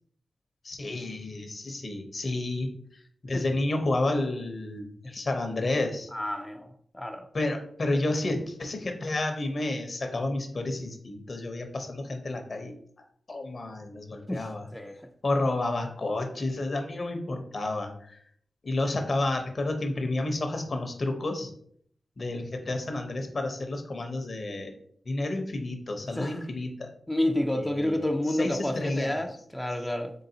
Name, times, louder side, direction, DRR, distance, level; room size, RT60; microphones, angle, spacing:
voice 1, 0.6-6.1 7.3-12.8 13.3-14.7 15.2-18.2 18.6-21.5 22.2-24.7 25.1-26.9 27.5-28.0 28.3-29.2, left 2 dB, 55° left, 0.8 m, -30 dB
voice 2, 6.1-6.7 6.9-7.3 14.3-14.5 14.7-14.9 26.1-26.4 27.1-30.1, left 1 dB, 10° left, 0.5 m, -29 dB
3.9 x 3.8 x 2.8 m
cardioid pair, 45°, 0 cm